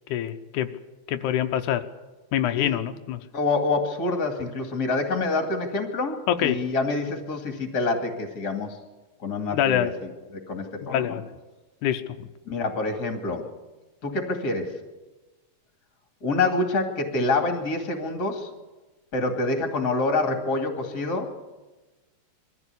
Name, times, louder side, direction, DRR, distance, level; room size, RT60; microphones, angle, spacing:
voice 1, 0.1-0.7 1.1-1.8 2.3-3.2 6.3-6.6 9.5-9.9 10.8-11.2 11.8-12.3, left 11 dB, 90° left, 8 dB, 2.3 m, -25 dB
voice 2, 3.3-8.8 9.2-11.2 12.5-13.5 14.0-14.8 16.2-18.5 19.1-21.3, left 3 dB, 35° left, 4 dB, 2.5 m, -27 dB
22.5 x 14.5 x 8.3 m, 1.2 s
omnidirectional pair, 3.4 m